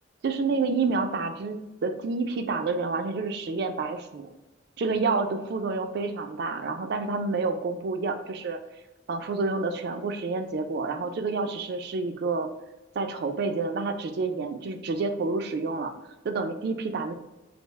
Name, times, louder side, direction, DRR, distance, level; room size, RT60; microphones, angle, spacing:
voice 1, 0.2-4.3 4.8-8.6 9.1-12.5 13.0-15.9 16.2-17.1, right 4 dB, 60° right, 7 dB, 0.4 m, -29 dB
3.4 x 2.4 x 3.1 m, 0.99 s
head